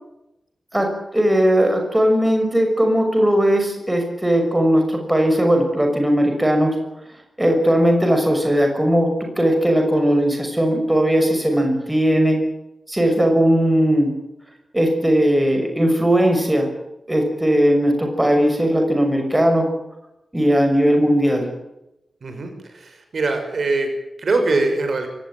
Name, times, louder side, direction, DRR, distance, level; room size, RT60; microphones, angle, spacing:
voice 1, 0.7-6.8 7.4-12.4 12.9-14.1 14.7-16.7 17.1-19.7 20.3-21.5, equal, 10° right, 4 dB, 6.1 m, -18 dB
voice 2, 22.2-25.1, right 3 dB, 60° right, 6 dB, 5.9 m, -23 dB
23.5 x 19.0 x 9.2 m, 0.88 s
wide cardioid pair, 155°, 0 cm